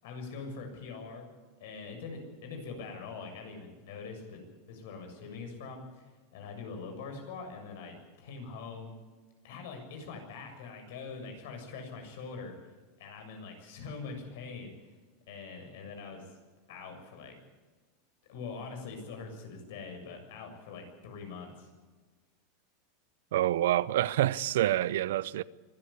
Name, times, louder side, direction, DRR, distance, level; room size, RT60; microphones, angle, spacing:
voice 1, 0.0-1.3 1.6-4.4 4.7-8.9 9.4-12.5 13.0-14.9 15.3-16.3 16.7-17.4 18.3-21.7, left 4 dB, 75° left, 7.0 m, -43 dB
voice 2, 23.3-25.4, right 13 dB, 80° right, 0.7 m, -27 dB
24.5 x 13.5 x 8.6 m
supercardioid pair, 140°, 0 cm